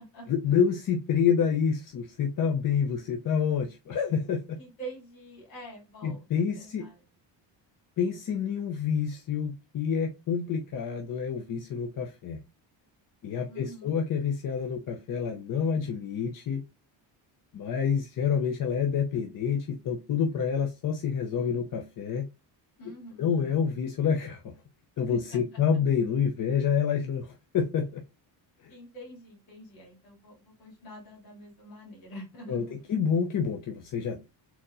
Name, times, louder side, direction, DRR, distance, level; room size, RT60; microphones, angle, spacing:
voice 1, 0.3-4.6 6.0-6.9 8.0-12.4 13.2-16.6 17.5-22.3 23.2-24.4 25.0-28.0 28.6-28.7 32.5-34.3, left 7 dB, 45° left, 3 dB, 0.7 m, -28 dB
voice 2, 4.6-7.0 13.5-14.0 22.8-23.3 25.1-25.8 28.7-32.8, right 1 dB, 80° left, -4 dB, 2.8 m, -46 dB
4.3 x 4.2 x 2.6 m, 0.26 s
cardioid pair, 95°, 46 cm